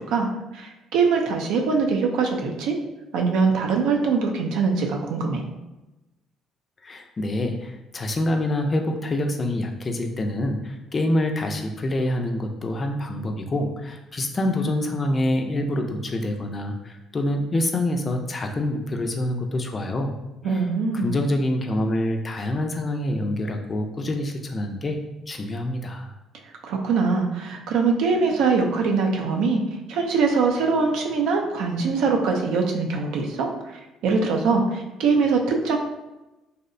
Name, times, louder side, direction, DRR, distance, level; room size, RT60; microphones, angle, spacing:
voice 1, 0.0-2.8 3.1-5.4 20.4-21.2 26.6-29.6 29.9-35.8, right 4 dB, 80° right, 2 dB, 0.4 m, -23 dB
voice 2, 6.8-20.1 20.4-20.6 20.9-25.0 25.3-26.1, left 1 dB, 30° left, 4 dB, 0.3 m, -26 dB
2.7 x 2.0 x 2.5 m, 1.0 s
cardioid pair, 90°, 0 cm